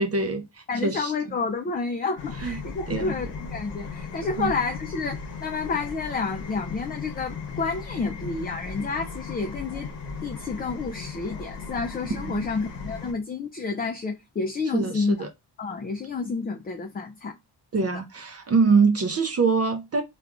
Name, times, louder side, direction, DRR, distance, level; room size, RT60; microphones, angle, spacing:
voice 1, 0.0-1.1 2.4-2.6 2.9-3.1 4.4-4.5 12.2-12.5 14.7-15.3 17.7-20.0, right 4 dB, 35° right, 0.5 m, -24 dB
voice 2, 0.7-9.9 10.2-15.2 15.6-17.4 17.8-17.9, left 4 dB, 25° left, 0.3 m, -30 dB
sound 1, 2.2-13.1, left 5 dB, 70° left, 0.8 m, -37 dB
3.3 x 2.3 x 2.3 m
cardioid pair, 65°, 43 cm